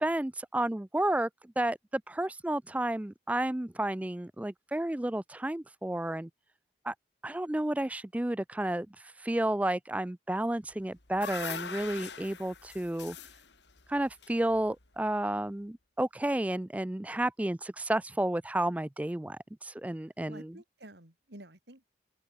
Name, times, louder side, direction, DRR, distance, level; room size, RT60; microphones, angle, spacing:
voice 1, 0.0-6.3 6.9-7.0 7.2-8.9 9.2-13.2 13.9-20.5, right 1 dB, 10° right, 0.3 m, -31 dB
sound 1, 10.7-15.0, left 6 dB, 80° left, 4.0 m, -42 dB
voice 2, 20.3-21.9, right 1 dB, 75° right, 3.9 m, -50 dB
head